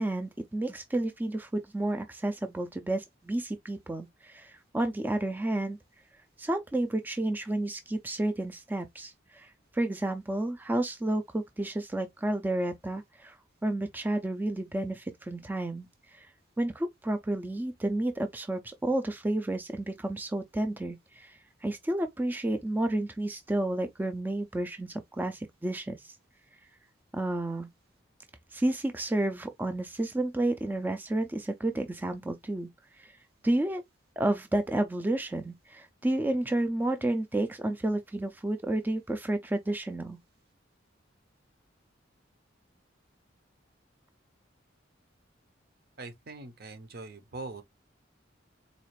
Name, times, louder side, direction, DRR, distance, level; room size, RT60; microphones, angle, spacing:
voice 1, 0.0-5.8 6.4-13.4 13.6-16.3 16.6-26.2 27.1-27.7 28.5-32.7 33.0-33.2 33.4-33.8 34.2-40.2, right 1 dB, 10° right, 0.3 m, -31 dB
voice 2, 46.0-47.6, right 3 dB, 55° right, 0.7 m, -42 dB
4.0 x 2.4 x 3.0 m
head